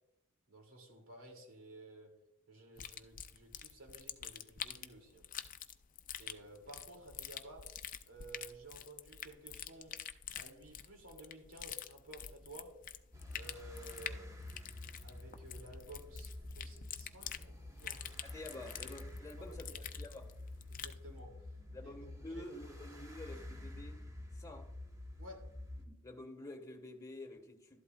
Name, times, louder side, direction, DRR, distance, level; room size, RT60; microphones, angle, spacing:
voice 1, 0.5-2.2 2.5-5.3 6.2-7.7 8.1-10.0 10.3-12.8 13.3-14.3 15.0-18.1 19.4-19.8 20.7-21.5 21.8-21.9 22.3-22.5 25.2-25.5, right 2 dB, 65° right, 2.6 m, -54 dB
sound 1, 2.8-21.0, left 9 dB, 40° left, 0.5 m, -47 dB
sound 2, 13.1-25.9, left 1 dB, 15° right, 1.1 m, -49 dB
voice 2, 18.2-20.3 21.7-24.0 24.3-24.7 25.8-27.8, left 2 dB, 15° left, 1.4 m, -49 dB
12.5 x 11.5 x 2.3 m
head